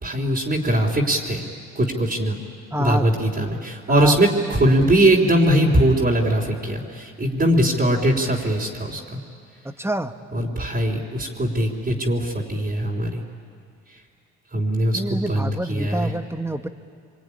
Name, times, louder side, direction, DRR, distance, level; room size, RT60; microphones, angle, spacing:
voice 1, 0.0-1.4 1.8-2.4 2.8-9.2 10.3-13.2 13.9-14.0 14.5-16.1, right 1 dB, 30° right, -4 dB, 3.6 m, -21 dB
voice 2, 2.7-3.5 3.9-4.2 9.6-10.1 14.9-16.7, right 1 dB, 10° right, 8 dB, 1.4 m, -27 dB
25.0 x 24.0 x 10.0 m, 2.3 s
cardioid pair, 75°, 30 cm